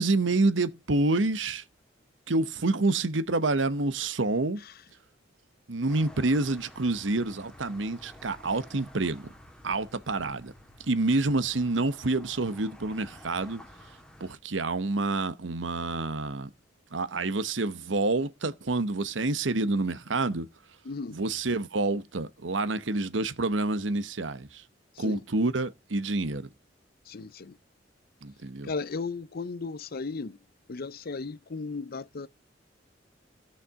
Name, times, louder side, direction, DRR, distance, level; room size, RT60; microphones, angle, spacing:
voice 1, 0.0-1.6 2.3-4.6 5.7-9.3 9.6-10.5 10.8-13.6 14.2-16.5 16.9-20.5 21.1-24.6 25.0-26.5 28.2-28.7, right 2 dB, 90° right, 1.0 m, -28 dB
voice 2, 4.6-4.9 20.8-21.2 24.9-25.3 27.1-27.6 28.6-30.4 30.7-32.3, left 4 dB, 55° left, 0.6 m, -36 dB
sound 1, 5.9-14.4, equal, 5° left, 1.9 m, -51 dB
17.0 x 5.8 x 3.7 m
head